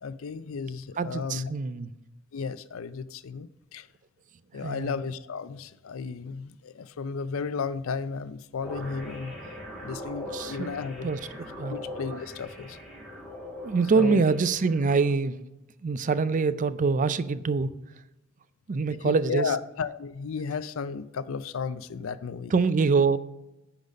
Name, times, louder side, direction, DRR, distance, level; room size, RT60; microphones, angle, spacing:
voice 1, 0.0-1.5 2.3-3.9 4.5-9.3 9.8-11.1 11.7-12.8 13.9-14.2 19.0-22.5, left 5 dB, 75° left, 0.4 m, -34 dB
voice 2, 1.0-1.9 4.6-4.9 10.3-10.7 11.0-11.2 11.6-11.7 12.9-15.4 15.8-17.7 18.7-19.5 22.5-23.2, right 4 dB, 40° right, 0.4 m, -25 dB
sound 1, 8.6-15.1, left 1 dB, ahead, 1.8 m, -41 dB
10.5 x 4.0 x 6.3 m
head